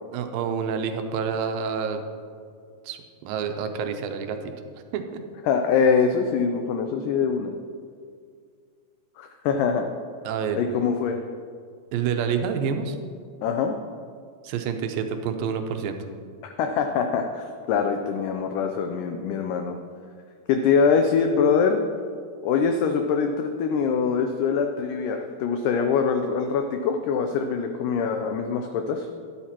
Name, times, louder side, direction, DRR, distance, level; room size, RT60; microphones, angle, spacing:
voice 1, 0.1-2.0 2.8-4.5 4.9-5.2 10.2-10.6 11.9-13.0 14.4-16.0, right 6 dB, 85° right, 6 dB, 2.3 m, -28 dB
voice 2, 5.5-7.5 9.2-9.9 10.6-11.2 13.4-13.8 16.4-19.8 20.5-21.8 22.4-29.1, left 6 dB, 80° left, 5 dB, 1.9 m, -23 dB
12.5 x 10.5 x 2.9 m, 2.1 s
omnidirectional pair, 4.2 m